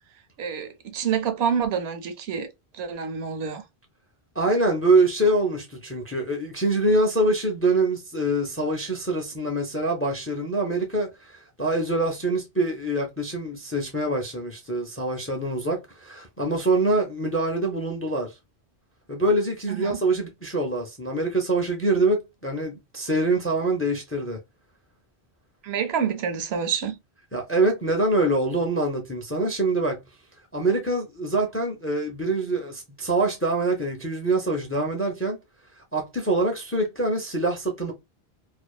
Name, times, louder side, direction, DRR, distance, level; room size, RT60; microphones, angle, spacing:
voice 1, 0.4-2.5 2.7-3.6 19.7-20.0 25.6-27.0, right 7 dB, 80° right, 0.9 m, -27 dB
voice 2, 4.4-18.3 19.1-24.4 27.3-30.0 30.5-35.4 35.8-37.9, right 2 dB, 20° left, 0.4 m, -25 dB
2.5 x 2.3 x 2.2 m
omnidirectional pair, 1.1 m